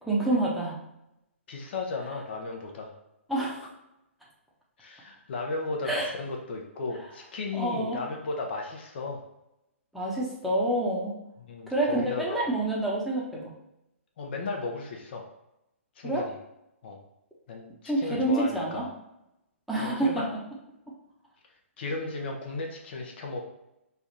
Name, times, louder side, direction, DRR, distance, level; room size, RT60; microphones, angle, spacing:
voice 1, 0.0-0.8 3.3-3.7 5.8-6.1 7.5-8.0 9.9-11.1 11.7-13.5 16.0-16.2 17.8-18.9 19.7-20.2, right 1 dB, ahead, -6 dB, 0.8 m, -27 dB
voice 2, 1.5-2.9 4.8-9.2 11.5-12.4 14.2-15.3 16.0-16.3 16.8-17.0 17.5-18.9 19.7-20.3 21.8-23.4, left 3 dB, 50° left, 1 dB, 0.7 m, -35 dB
3.4 x 2.4 x 4.1 m, 0.87 s
figure-of-eight pair, 130°, 7 cm